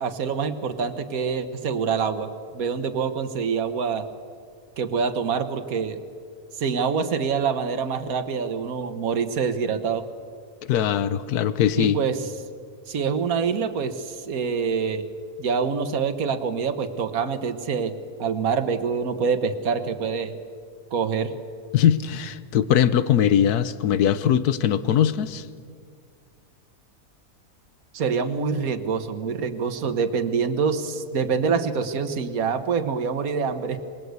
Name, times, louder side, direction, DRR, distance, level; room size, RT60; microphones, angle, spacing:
voice 1, 0.0-4.1 4.8-6.0 6.6-10.1 11.8-12.2 12.9-15.0 15.4-20.4 20.9-21.3 27.9-33.8, right 6 dB, 65° right, 8 dB, 1.7 m, -26 dB
voice 2, 10.7-12.0 21.7-25.5, left 9 dB, 80° left, 14 dB, 1.4 m, -21 dB
27.0 x 20.0 x 8.2 m, 2.1 s
omnidirectional pair, 1.6 m